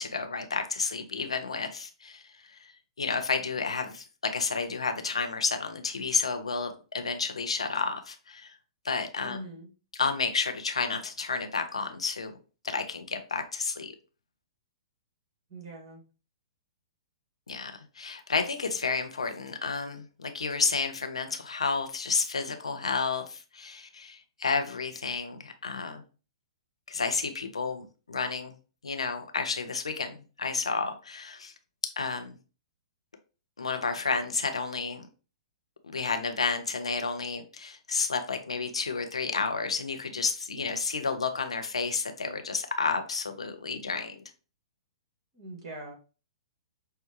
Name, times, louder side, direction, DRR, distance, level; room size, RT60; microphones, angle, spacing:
voice 1, 0.0-2.2 3.0-8.6 8.8-9.4 9.9-12.3 12.6-13.9 17.5-26.0 26.9-28.5 28.8-31.5 32.0-32.4 33.6-35.1 35.8-44.2, left 4 dB, 80° left, 7 dB, 0.7 m, -31 dB
voice 2, 9.2-9.7 15.5-16.0 45.3-45.9, right 1 dB, 45° right, 1 dB, 1.6 m, -42 dB
5.7 x 2.2 x 3.0 m, 0.34 s
figure-of-eight pair, 115°, 3 cm